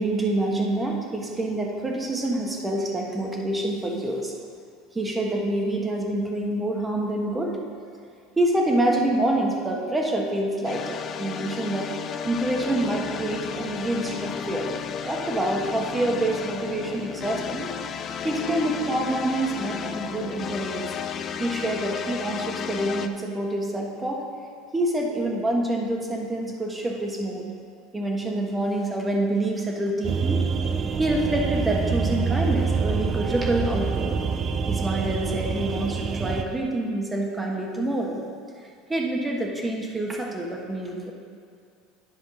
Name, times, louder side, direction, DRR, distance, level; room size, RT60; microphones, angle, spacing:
voice 1, 0.0-4.3 4.9-7.6 8.4-11.9 12.2-14.7 15.0-17.7 18.2-20.9 21.4-24.2 24.7-27.5 27.9-30.4 31.0-34.2 34.7-38.2 38.9-41.1, right 1 dB, 15° right, 0 dB, 1.5 m, -26 dB
sound 1, 10.6-23.1, left 7 dB, 40° left, 0.5 m, -33 dB
sound 2, 30.0-36.4, right 5 dB, 35° right, 0.6 m, -26 dB
10.0 x 4.9 x 5.9 m, 2.3 s
supercardioid pair, 105°, 0 cm